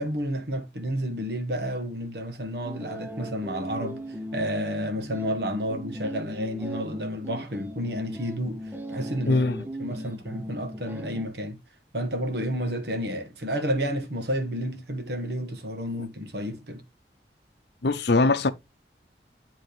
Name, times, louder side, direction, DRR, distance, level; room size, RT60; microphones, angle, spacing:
voice 1, 0.0-4.0 4.3-9.4 9.8-11.6 11.9-16.8, equal, 70° right, 1.4 m, -31 dB
sound 1, 2.6-11.3, equal, 10° right, 0.7 m, -37 dB
voice 2, 9.3-9.6 17.8-18.5, left 3 dB, 70° left, 0.7 m, -21 dB
10.5 x 3.5 x 3.2 m
head